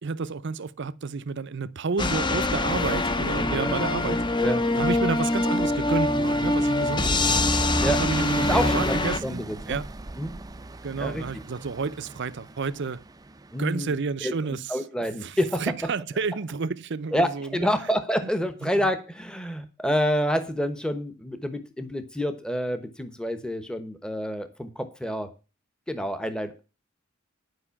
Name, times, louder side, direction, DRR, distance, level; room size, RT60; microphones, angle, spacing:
voice 1, 0.0-4.3 4.8-7.1 7.9-9.9 10.8-13.0 13.6-14.8 15.2-17.7 18.6-18.9, right 4 dB, 60° right, 0.6 m, -30 dB
sound 1, 2.0-9.2, left 2 dB, 25° left, 0.8 m, -24 dB
voice 2, 3.5-3.8 4.4-4.6 6.8-6.9 7.8-8.0 8.5-9.0 9.2-9.8 10.2-10.4 11.0-11.2 13.5-13.9 14.2-15.6 17.1-25.3 25.9-26.6, equal, 5° left, 1.1 m, -28 dB
sound 2, 5.0-13.8, right 1 dB, 20° right, 0.5 m, -37 dB
11.0 x 5.4 x 7.1 m
head